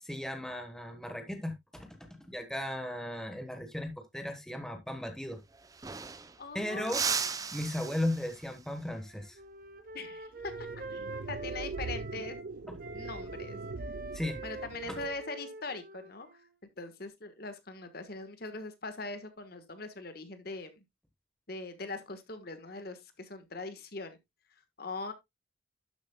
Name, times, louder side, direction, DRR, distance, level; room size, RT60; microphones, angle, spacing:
voice 1, 0.0-5.4 6.5-7.0 7.5-9.4 12.7-12.8 14.1-14.4 14.9-15.0, left 1 dB, 5° left, 1.1 m, -36 dB
sound 1, 5.2-5.3 5.5-6.5 6.8-8.6 11.1-11.4 12.8-13.3, right 5 dB, 20° right, 0.5 m, -36 dB
voice 2, 6.4-7.2 7.5-7.6 9.9-12.4 12.9-13.6 14.4-16.3 16.8-20.8 21.5-24.2 24.8-25.1, left 3 dB, 50° left, 1.3 m, -41 dB
Wind instrument woodwind instrument, 8.9-12.4 12.8-16.5, right 2 dB, 45° right, 1.2 m, -45 dB
sound 2, 10.4-15.2, right 3 dB, 65° right, 0.6 m, -42 dB
11.5 x 7.2 x 2.2 m
head